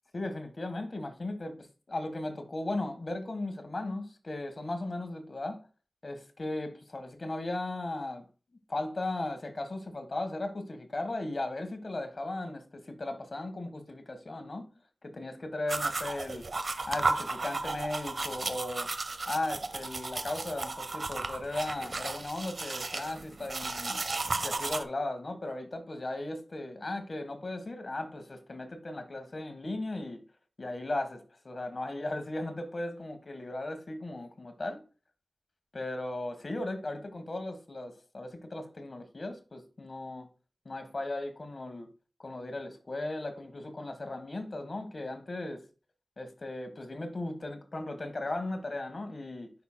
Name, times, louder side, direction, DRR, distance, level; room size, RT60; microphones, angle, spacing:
voice 1, 0.1-5.7 6.0-8.3 8.7-14.6 15.0-16.5 16.9-18.9 19.3-24.0 24.4-30.2 30.6-34.8 35.7-40.3 40.6-41.9 42.2-45.6 46.2-49.5, left 2 dB, 55° left, 1.4 m, -37 dB
sound 1, 15.7-24.8, right 3 dB, 60° right, 0.7 m, -34 dB
9.3 x 5.9 x 2.2 m
wide cardioid pair, 60°, 0 cm